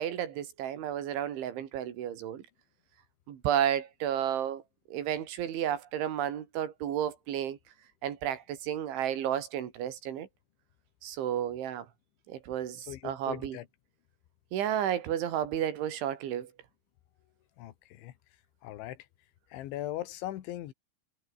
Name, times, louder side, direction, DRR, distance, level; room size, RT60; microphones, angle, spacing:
voice 1, 0.0-2.4 3.3-4.6 4.9-7.6 8.0-10.3 11.0-11.9 12.3-13.6 14.5-16.5, right 10 dB, 80° right, 4.9 m, -32 dB
voice 2, 12.9-13.7 17.6-18.1 18.6-19.0 19.5-20.7, left 14 dB, 80° left, 3.8 m, -39 dB
omnidirectional pair, 5.4 m